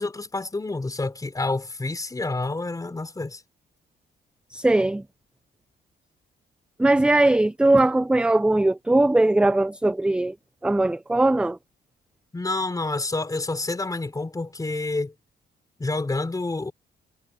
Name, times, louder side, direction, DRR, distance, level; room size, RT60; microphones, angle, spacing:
voice 1, 0.0-3.4 12.3-15.1 15.8-16.7, left 2 dB, 20° left, 3.7 m, -28 dB
voice 2, 4.5-5.0 6.8-10.4 10.6-11.6, right 2 dB, 5° right, 0.4 m, -20 dB
cardioid pair, 115°, 19 cm